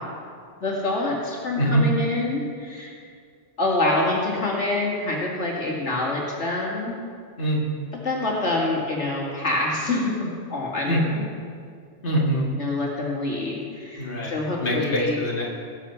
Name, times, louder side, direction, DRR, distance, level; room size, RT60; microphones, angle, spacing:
voice 1, 0.6-2.9 3.6-6.9 8.0-11.3 12.6-15.2, left 2 dB, 75° left, -3 dB, 2.5 m, -26 dB
voice 2, 12.0-12.5 14.0-15.5, equal, 45° left, -4 dB, 2.3 m, -24 dB
18.5 x 7.3 x 5.7 m, 2.2 s
omnidirectional pair, 1.2 m